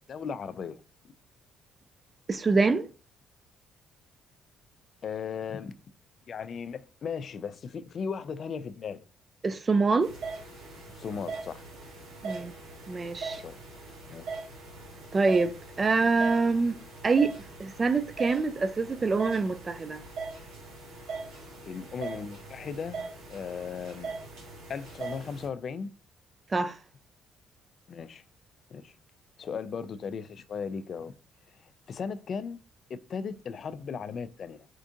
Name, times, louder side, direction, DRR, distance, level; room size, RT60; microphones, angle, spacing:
voice 1, 0.1-0.8 5.0-5.7 6.3-9.0 11.0-11.6 12.3-12.4 13.4-13.6 14.1-14.3 21.7-23.0 23.3-24.1 24.7-25.9 27.9-28.2 28.7-29.0 29.4-31.1 31.6-32.6 32.9-34.7, left 6 dB, 50° left, 0.3 m, -37 dB
voice 2, 2.3-2.9 9.4-10.1 12.2-12.5 12.9-13.4 15.1-16.8 17.0-17.3 17.6-20.0 26.5-26.8, right 4 dB, 30° right, 0.3 m, -25 dB
sound 1, 10.0-25.5, right 4 dB, 85° right, 1.3 m, -41 dB
4.4 x 2.4 x 2.6 m
cardioid pair, 85°, 0 cm